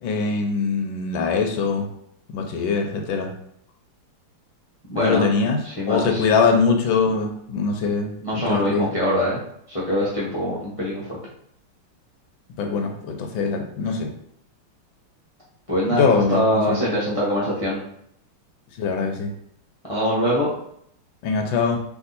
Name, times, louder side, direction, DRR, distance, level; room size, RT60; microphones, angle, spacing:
voice 1, 0.0-1.8 2.3-3.3 5.0-5.6 5.9-8.9 12.6-14.1 16.0-16.4 16.7-16.8 18.8-19.3 21.2-21.8, left 5 dB, 75° left, 4 dB, 1.4 m, -22 dB
voice 2, 4.9-5.2 5.6-6.2 8.2-9.4 9.7-11.2 15.7-17.8 19.9-20.5, equal, 30° left, -7 dB, 0.6 m, -23 dB
3.5 x 3.2 x 4.0 m, 0.71 s
omnidirectional pair, 2.3 m